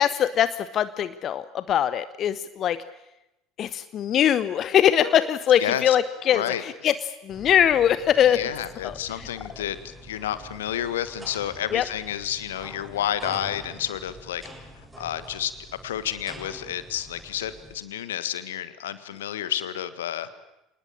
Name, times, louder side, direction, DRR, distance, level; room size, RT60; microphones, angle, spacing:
voice 1, 0.0-2.8 3.6-8.4 8.8-9.3 11.7-11.8, left 10 dB, 40° left, 14 dB, 0.8 m, -22 dB
voice 2, 5.6-6.0 6.3-6.6 8.3-14.4 15.0-15.5 15.8-20.3, left 11 dB, 70° left, 13 dB, 1.5 m, -30 dB
sound 1, 7.3-17.8, right 1 dB, 10° right, 7.5 m, -45 dB
27.5 x 19.5 x 8.9 m, 0.92 s
figure-of-eight pair, 65°, 0 cm